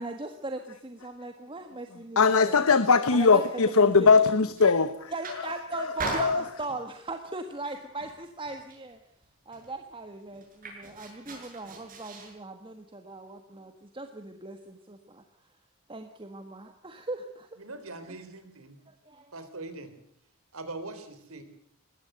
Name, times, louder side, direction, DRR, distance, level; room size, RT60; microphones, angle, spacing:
voice 1, 0.0-2.6 3.1-4.1 5.1-9.0 9.4-15.2 15.9-17.6 18.1-18.2 18.9-19.3, right 2 dB, 25° right, 6 dB, 1.4 m, -39 dB
voice 2, 2.2-5.1 6.2-6.4, left 4 dB, 85° left, 13 dB, 1.0 m, -20 dB
sound 1, 4.1-4.7 5.1-5.6 6.0-7.0 7.5-7.8 8.0-8.9 9.2-9.3 9.5-12.3, right 2 dB, 40° right, 7.1 m, -38 dB
voice 3, 17.6-18.8 19.3-19.9 20.5-21.4, right 2 dB, 85° right, 10 dB, 3.8 m, -41 dB
20.5 x 16.5 x 7.9 m, 0.72 s
head